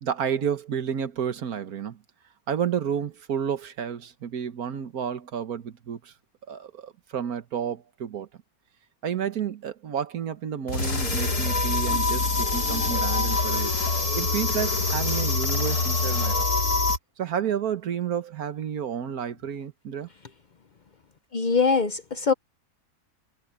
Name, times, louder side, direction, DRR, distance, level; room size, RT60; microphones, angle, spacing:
voice 1, 0.0-2.0 2.5-6.1 6.5-8.3 9.0-13.8 14.1-16.5 17.2-20.1, right 8 dB, 70° right, 1.6 m, -31 dB
sound 1, 10.7-17.0, left 3 dB, 85° left, 3.8 m, -25 dB
voice 2, 21.3-22.3, left 5 dB, 45° left, 0.6 m, -22 dB
omnidirectional pair, 1.6 m